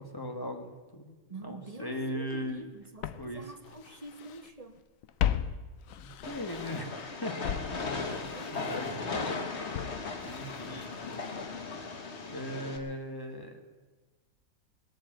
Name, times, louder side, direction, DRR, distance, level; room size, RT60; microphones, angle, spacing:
voice 1, 0.0-1.1 1.4-2.6 3.2-3.4 6.0-6.9 7.2-7.4 8.5-9.3 10.2-11.3 12.3-13.6, left 1 dB, 15° left, 4 dB, 1.6 m, -38 dB
voice 2, 1.3-4.8 8.1-9.5, right 2 dB, 30° right, 7 dB, 0.9 m, -46 dB
Walk footsteps, 2.3-2.4 3.0-4.5 4.8-7.0 7.4-11.5 11.7-11.8, left 10 dB, 70° left, 1.1 m, -37 dB
Train, 6.2-12.8, left 4 dB, 50° left, 1.6 m, -37 dB
20.0 x 7.6 x 8.8 m, 1.3 s
omnidirectional pair, 1.5 m